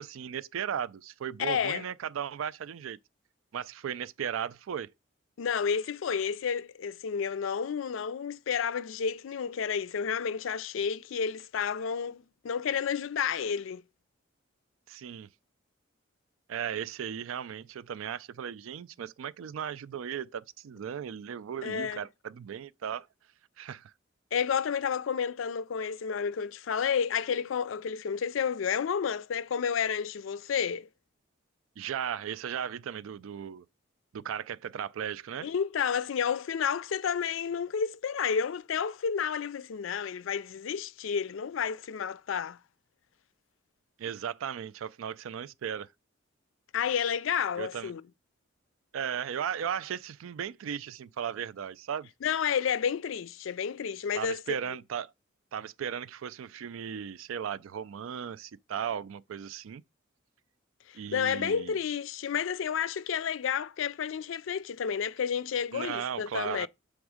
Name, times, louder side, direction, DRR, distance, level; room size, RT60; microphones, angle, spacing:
voice 1, 0.0-3.0 3.5-4.9 14.9-15.3 16.5-23.1 23.6-23.9 31.8-33.6 34.1-35.5 44.0-45.9 47.6-47.9 48.9-52.1 54.1-55.1 55.5-59.8 60.9-61.7 65.7-66.7, right 8 dB, 85° right, 0.4 m, -36 dB
voice 2, 1.4-1.8 5.4-13.8 21.6-22.0 24.3-30.9 35.4-42.6 46.7-48.0 52.2-54.4 60.9-66.7, left 7 dB, 70° left, 0.4 m, -31 dB
7.1 x 3.5 x 4.9 m
head